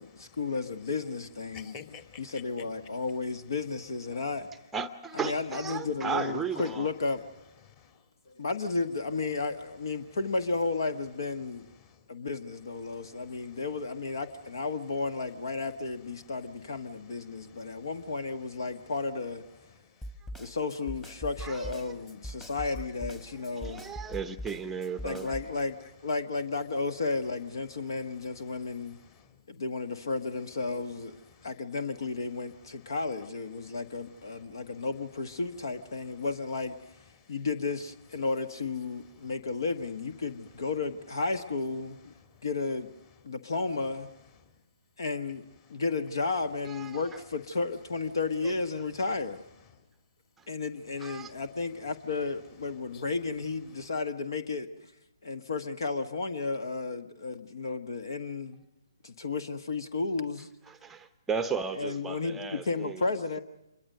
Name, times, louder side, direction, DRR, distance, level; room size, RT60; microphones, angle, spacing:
voice 1, 0.0-1.8 2.2-4.5 5.1-7.2 8.3-11.7 12.1-19.4 20.4-23.8 25.0-25.8 26.0-29.0 29.5-31.2 31.4-36.8 37.3-42.1 42.4-42.9 43.2-44.1 45.0-45.4 45.7-49.4 50.5-54.9 55.2-58.6 59.0-60.5 61.8-63.4, left 3 dB, 60° left, 1.4 m, -33 dB
voice 2, 1.5-3.0 4.1-4.2 7.7-8.0 11.8-12.0 12.8-13.6 17.3-17.9 19.7-19.9 22.4-22.5 23.2-23.4 23.7-24.1 25.3-25.6 27.8-27.9 28.5-29.4 31.3-31.5 32.8-32.9 33.6-33.8 34.2-34.7 37.2-37.3 39.2-39.3 42.3-42.4 45.7-45.8 52.9-53.0, left 7 dB, 35° left, 3.1 m, -53 dB
voice 3, 4.7-6.9 21.4-22.0 23.3-25.3 46.6-47.2 48.4-48.5 50.4-50.5 51.0-51.3 60.7-63.0, right 6 dB, 5° right, 0.8 m, -35 dB
Snare drum, 20.0-25.5, equal, 10° left, 1.5 m, -41 dB
26.5 x 22.5 x 6.6 m
figure-of-eight pair, 140°, 2 cm